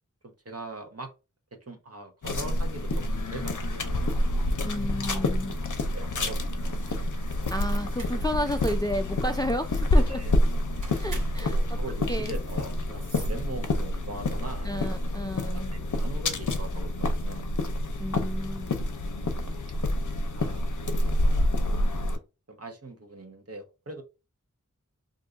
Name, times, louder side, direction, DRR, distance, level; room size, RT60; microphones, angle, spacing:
voice 1, 0.2-1.1 1.7-4.1 5.1-5.4 5.6-6.8 7.1-7.2 10.1-10.3 11.4-15.0 15.5-17.5 19.4-19.8 20.3-20.7 21.0-21.4 22.5-24.0, right 2 dB, 50° right, 0.9 m, -41 dB
sound 1, 2.2-22.2, left 1 dB, 70° left, 0.6 m, -28 dB
voice 2, 4.6-5.6 7.5-10.2 11.0-11.6 12.1-12.4 14.6-15.7 18.0-18.8, equal, 15° left, 0.3 m, -32 dB
sound 2, 6.8-14.0, right 1 dB, 70° right, 1.2 m, -46 dB
2.6 x 2.3 x 3.7 m
wide cardioid pair, 45°, 32 cm